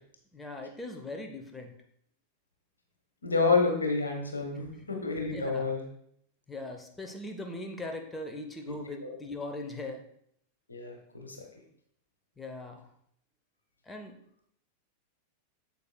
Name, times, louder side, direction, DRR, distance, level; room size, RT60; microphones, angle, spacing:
voice 1, 0.3-1.7 4.7-4.8 5.3-5.7 6.5-10.0 12.4-12.9 13.8-14.1, left 2 dB, 10° left, 3 dB, 0.9 m, -40 dB
voice 2, 3.2-5.8 9.0-9.1 10.7-11.4, left 4 dB, 80° left, 3 dB, 1.5 m, -29 dB
8.3 x 7.8 x 2.3 m, 0.70 s
figure-of-eight pair, 90°, 0 cm